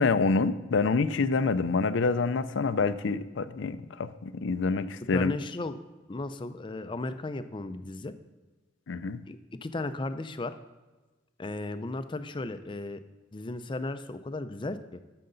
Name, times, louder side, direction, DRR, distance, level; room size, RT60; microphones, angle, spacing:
voice 1, 0.0-5.3 8.9-9.2, left 4 dB, 80° left, 13 dB, 0.5 m, -27 dB
voice 2, 5.1-5.8 6.1-8.1 9.3-10.5 11.4-13.0 13.3-15.0, left 2 dB, 25° left, 11 dB, 0.5 m, -35 dB
13.0 x 6.7 x 3.9 m, 1.2 s
head